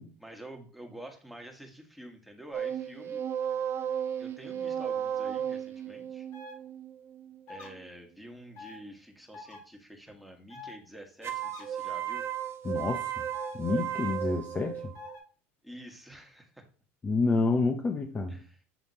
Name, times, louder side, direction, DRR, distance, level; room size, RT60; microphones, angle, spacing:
voice 1, 0.2-3.2 4.2-6.3 7.5-12.2 15.6-16.7 18.3-18.6, right 1 dB, ahead, 1.7 m, -48 dB
sound 1, 2.5-7.9 11.2-15.2, right 9 dB, 40° right, 0.7 m, -35 dB
sound 2, 6.3-6.5 7.5-7.7 8.6-8.8 9.3-9.6 10.5-10.7 11.4-11.7 13.3-13.6 14.9-15.2, left 4 dB, 50° left, 2.4 m, -45 dB
voice 2, 12.6-13.2 13.5-14.8 17.0-18.4, left 3 dB, 25° left, 0.8 m, -28 dB
8.0 x 3.5 x 4.2 m
supercardioid pair, 95°, 7 cm